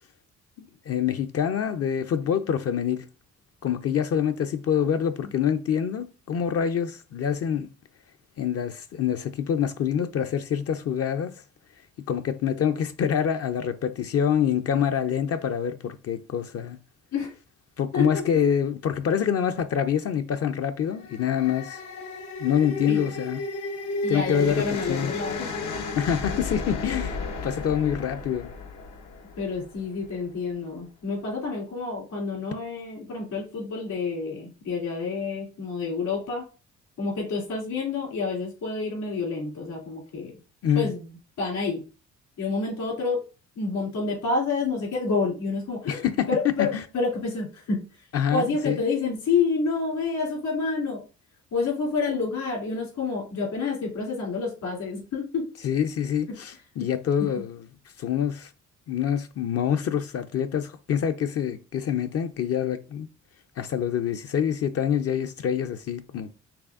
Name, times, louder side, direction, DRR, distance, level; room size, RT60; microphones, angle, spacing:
voice 1, 0.6-3.1 3.6-7.7 8.4-11.4 12.1-16.8 17.8-21.8 22.4-23.4 24.1-25.1 26.0-28.5 40.6-40.9 45.9-46.3 46.6-46.8 48.1-48.8 55.6-57.7 58.0-58.5 58.9-63.1 63.6-66.3, left 8 dB, 55° left, 0.5 m, -26 dB
sound 1, 20.8-30.1, left 3 dB, 90° left, 0.9 m, -33 dB
voice 2, 24.0-25.5 29.4-36.4 37.0-40.3 40.7-41.1 41.4-41.8 42.4-43.2 43.6-46.0 46.3-47.9 48.3-51.0 51.5-55.5, left 4 dB, 75° left, 2.7 m, -28 dB
6.0 x 3.3 x 2.4 m
cardioid pair, 90°, 30 cm